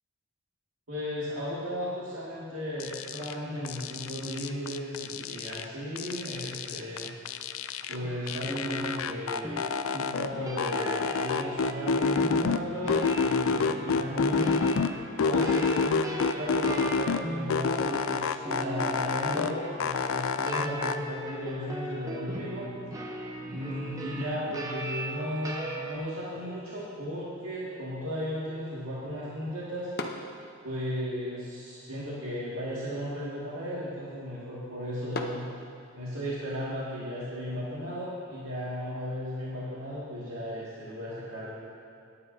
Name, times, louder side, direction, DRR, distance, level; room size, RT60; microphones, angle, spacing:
voice 1, 0.9-7.1 7.9-9.6 9.9-14.6 15.2-22.7 23.5-29.9 30.6-35.4 35.9-41.5, equal, 85° right, -8 dB, 2.1 m, -35 dB
sound 1, 2.8-3.3 3.6-5.6 5.9-8.0 8.3-10.3 10.6-12.6 12.9-14.9 15.2-17.2 17.5-19.5 19.8-20.9, left 5 dB, 70° left, 0.4 m, -28 dB
sound 2, 8.0-26.0, right 1 dB, 15° right, 0.8 m, -38 dB
sound 3, 26.2-36.3, left 2 dB, 45° left, 0.8 m, -46 dB
18.5 x 9.6 x 2.7 m, 2.5 s
head